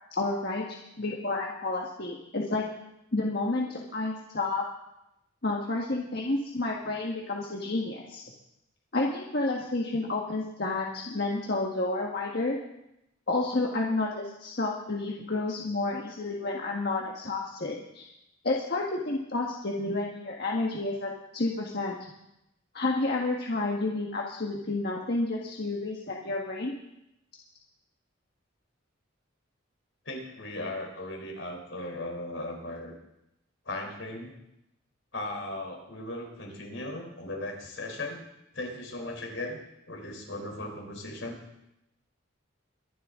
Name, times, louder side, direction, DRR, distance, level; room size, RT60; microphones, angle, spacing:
voice 1, 0.1-2.7 3.1-4.6 5.4-8.2 8.9-12.6 13.3-18.1 18.4-22.0 22.7-26.7, left 2 dB, 55° left, -1 dB, 1.5 m, -30 dB
voice 2, 30.1-32.9 33.7-34.3 35.1-38.2 38.5-39.6 39.9-41.4, left 1 dB, 70° left, 2 dB, 3.7 m, -37 dB
23.0 x 11.0 x 3.7 m, 0.86 s
head